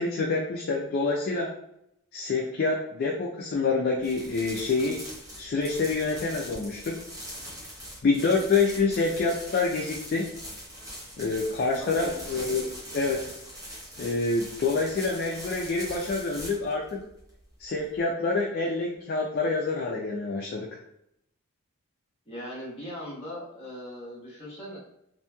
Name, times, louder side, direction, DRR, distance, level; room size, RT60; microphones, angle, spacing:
voice 1, 0.0-1.5 2.1-5.0 5.4-7.0 8.0-10.3 11.2-13.3 14.0-17.0 17.6-20.7, left 3 dB, 45° left, -1 dB, 0.3 m, -27 dB
sound 1, 4.0-18.0, equal, 15° right, 0.6 m, -42 dB
voice 2, 11.8-12.3 22.3-24.8, equal, 25° left, -7 dB, 1.1 m, -39 dB
2.9 x 2.6 x 2.2 m, 0.79 s
head